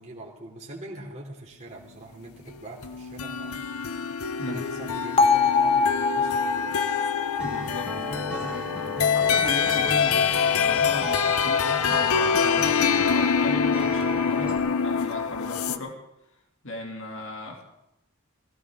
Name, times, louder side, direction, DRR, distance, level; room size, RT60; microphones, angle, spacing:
voice 1, 0.0-3.6 4.5-6.8 10.0-10.7, right 2 dB, 35° right, -3 dB, 3.1 m, -43 dB
sound 1, 2.8-15.8, left 7 dB, 80° left, 0.7 m, -25 dB
Bell, 5.2-9.2, left 4 dB, 25° left, 0.7 m, -25 dB
voice 2, 7.4-8.7 9.1-16.0 16.6-17.6, left 2 dB, 65° left, 1 dB, 2.7 m, -37 dB
Acoustic guitar, 7.4-14.6, right 1 dB, 5° right, 3.0 m, -35 dB
20.5 x 16.0 x 3.7 m, 0.88 s
head